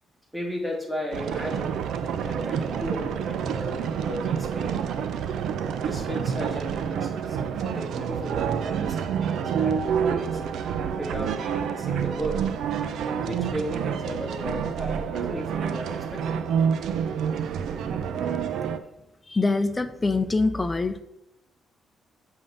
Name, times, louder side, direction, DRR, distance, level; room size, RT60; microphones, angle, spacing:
voice 1, 0.3-4.8 5.8-10.4 11.0-12.5 13.2-16.5, equal, ahead, -1 dB, 2.1 m, -35 dB
sound 1, 1.1-18.8, right 7 dB, 75° right, 0.5 m, -28 dB
voice 2, 19.3-21.0, left 3 dB, 20° left, 9 dB, 0.6 m, -24 dB
7.6 x 3.7 x 5.4 m, 0.89 s
cardioid pair, 90°, 0 cm